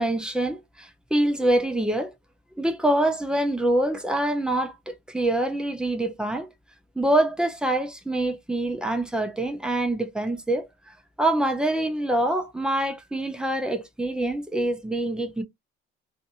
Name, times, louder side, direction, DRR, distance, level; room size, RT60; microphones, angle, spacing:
voice 1, 0.0-2.1 2.6-6.5 7.0-10.7 11.2-15.4, right 1 dB, 5° right, 0.4 m, -25 dB
2.6 x 2.5 x 2.6 m
cardioid pair, 180°, 20 cm